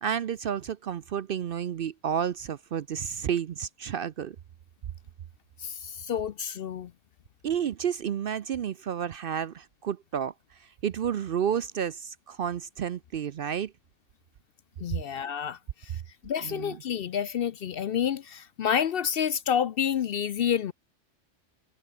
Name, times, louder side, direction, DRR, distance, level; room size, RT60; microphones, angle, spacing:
voice 1, 0.0-4.4 7.4-10.3 10.8-13.7 16.4-16.8, right 8 dB, 60° right, 0.7 m, -31 dB
voice 2, 5.6-6.9 14.8-20.7, left 8 dB, 60° left, 0.7 m, -29 dB
omnidirectional pair, 1.3 m